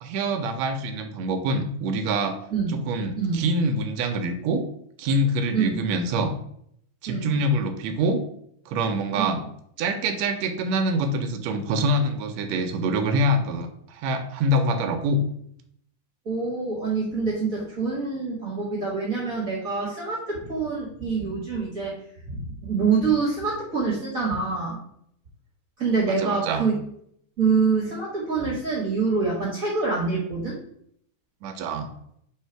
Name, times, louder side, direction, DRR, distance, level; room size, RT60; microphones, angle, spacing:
voice 1, 0.0-2.4 2.7-4.6 5.0-6.3 7.0-8.2 8.7-9.4 9.8-15.2 26.1-26.7 31.4-31.9, right 1 dB, 75° right, 6 dB, 1.7 m, -25 dB
voice 2, 16.2-22.0 22.3-24.8 25.8-26.7 27.4-30.6, right 4 dB, 45° right, -5 dB, 1.1 m, -25 dB
6.6 x 3.4 x 4.5 m, 0.69 s
omnidirectional pair, 3.6 m